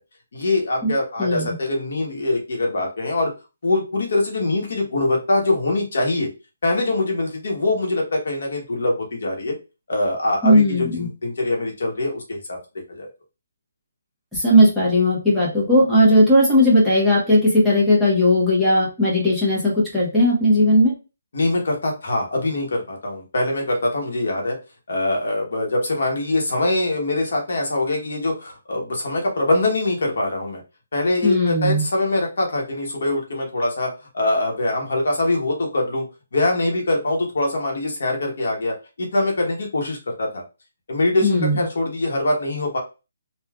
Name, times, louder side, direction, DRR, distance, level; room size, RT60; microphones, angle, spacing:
voice 1, 0.3-3.3 3.6-6.3 6.6-9.5 9.9-12.6 12.9-13.1 21.3-24.6 24.9-30.6 30.9-36.0 36.3-40.4 40.9-42.8, left 2 dB, 65° left, 0 dB, 1.1 m, -23 dB
voice 2, 1.2-1.5 10.4-11.1 14.3-20.9 31.2-31.8 41.2-41.6, equal, ahead, -9 dB, 1.1 m, -17 dB
3.3 x 2.4 x 2.3 m, 0.30 s
hypercardioid pair, 165°, 0 cm